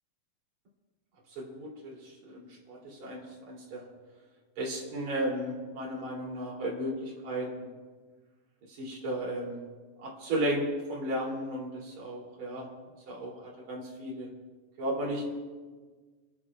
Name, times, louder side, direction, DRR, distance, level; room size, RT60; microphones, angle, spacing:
voice 1, 1.4-2.4 2.7-3.9 4.6-7.7 8.7-9.6 10.0-12.7 13.1-14.3 14.8-15.2, right 1 dB, 55° right, -3 dB, 4.5 m, -34 dB
30.0 x 12.0 x 2.5 m, 1.4 s
omnidirectional pair, 4.0 m